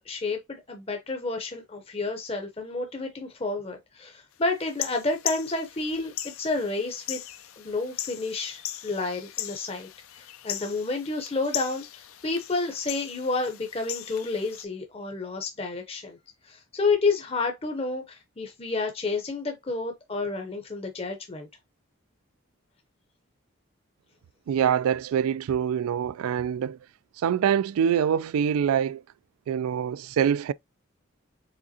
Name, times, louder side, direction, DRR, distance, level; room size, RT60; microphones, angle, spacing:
voice 1, 0.0-7.2 7.6-9.9 10.1-16.2 16.4-21.5, left 3 dB, 25° left, 0.6 m, -30 dB
sound 1, 4.6-14.6, left 12 dB, 80° left, 0.5 m, -38 dB
voice 2, 24.5-26.8 27.2-29.0 29.5-30.5, right 8 dB, 85° right, 0.3 m, -25 dB
5.0 x 3.5 x 2.7 m
head